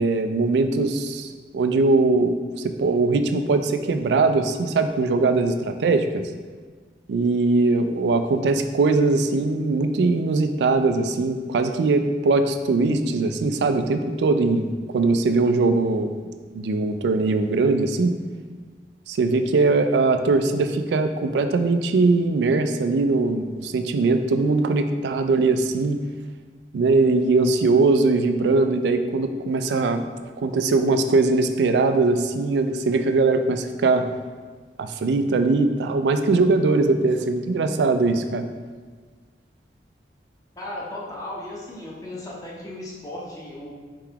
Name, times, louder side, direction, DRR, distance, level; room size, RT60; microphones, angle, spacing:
voice 1, 0.0-6.3 7.1-18.2 19.1-26.0 26.7-30.1 30.4-34.1 34.8-38.4, right 3 dB, 75° right, 8 dB, 0.3 m, -21 dB
voice 2, 40.6-43.7, left 1 dB, 20° left, -5 dB, 0.8 m, -36 dB
4.5 x 3.8 x 2.8 m, 1.5 s
head